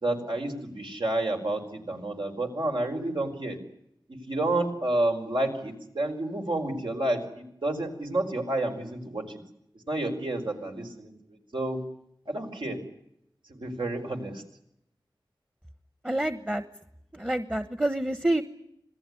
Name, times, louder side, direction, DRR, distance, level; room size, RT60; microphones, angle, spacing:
voice 1, 0.0-3.6 4.3-9.4 9.9-11.8 12.3-12.8 13.5-14.4, right 1 dB, 80° right, 3 dB, 5.1 m, -30 dB
voice 2, 16.0-16.6 17.1-18.4, right 1 dB, 15° right, 12 dB, 1.1 m, -27 dB
27.0 x 18.5 x 9.9 m, 0.77 s
wide cardioid pair, 75°, 8 cm